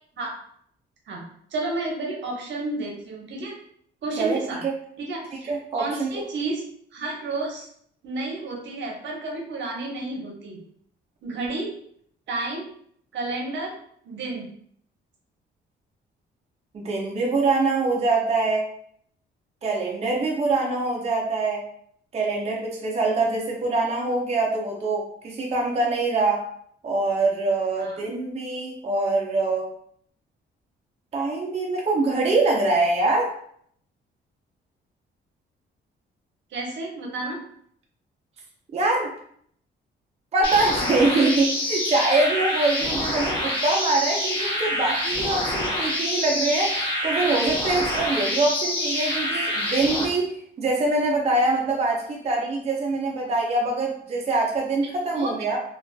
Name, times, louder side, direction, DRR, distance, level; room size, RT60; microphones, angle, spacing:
voice 1, 1.5-3.5 4.0-4.6 5.0-6.6 6.9-7.7 8.0-10.6 11.2-11.7 12.3-12.7 13.1-13.7 14.0-14.5 27.8-28.0 36.5-37.4 55.1-55.3, right 2 dB, 65° right, -1 dB, 0.8 m, -31 dB
voice 2, 5.5-6.1 16.7-18.7 19.6-21.7 22.1-26.5 26.8-29.7 31.1-33.3 38.7-39.1 40.3-55.6, right 3 dB, 30° right, -1 dB, 0.5 m, -24 dB
sound 1, 40.4-50.1, left 1 dB, 25° left, 0.9 m, -26 dB
2.4 x 2.3 x 2.2 m, 0.64 s
cardioid pair, 90°, 20 cm